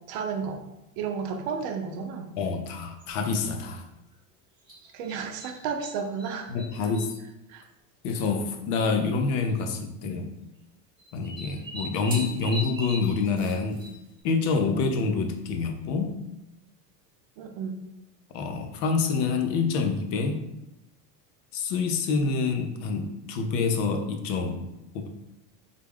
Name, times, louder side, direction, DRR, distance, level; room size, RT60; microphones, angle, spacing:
voice 1, 0.1-0.6 1.0-2.3 4.9-6.5 7.5-7.7 17.4-17.9, right 6 dB, 60° right, 5 dB, 0.6 m, -32 dB
voice 2, 2.4-3.8 6.5-7.1 8.0-10.3 11.1-13.8 14.2-16.2 18.3-20.4 21.5-24.7 24.9-25.1, left 4 dB, 55° left, 5 dB, 0.6 m, -27 dB
sound 1, 3.0-3.3 4.7-5.9 6.2-7.2 8.1-8.2 8.4-8.5 9.4-9.7 11.0-14.2, right 1 dB, 10° right, 1.0 m, -39 dB
3.6 x 2.2 x 3.4 m, 0.90 s
supercardioid pair, 120°, 48 cm